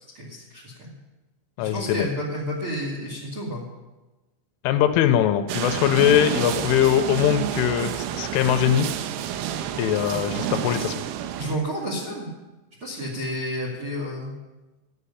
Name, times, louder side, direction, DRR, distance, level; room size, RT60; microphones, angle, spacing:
voice 1, 0.1-1.0 1.6-3.6 10.1-10.2 11.4-12.3 12.8-14.3, equal, 45° right, -3 dB, 1.9 m, -31 dB
voice 2, 1.6-2.1 4.6-8.9 9.8-11.0, left 10 dB, 85° left, 8 dB, 3.1 m, -21 dB
sound 1, 5.5-11.6, right 10 dB, 90° right, 2.4 m, -29 dB
13.0 x 6.8 x 9.8 m, 1.1 s
omnidirectional pair, 5.8 m